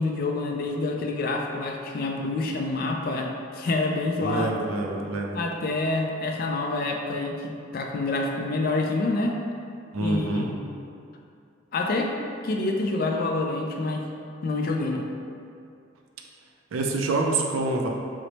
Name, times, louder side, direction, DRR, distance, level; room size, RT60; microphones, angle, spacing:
voice 1, 0.0-4.6 5.3-9.4 10.0-10.6 11.7-12.1 12.4-14.1 14.4-15.0, left 2 dB, 45° left, 1 dB, 0.3 m, -27 dB
voice 2, 4.2-5.4 9.9-10.5 16.7-17.9, right 2 dB, 90° right, 1 dB, 0.4 m, -26 dB
3.1 x 2.0 x 4.0 m, 2.4 s
head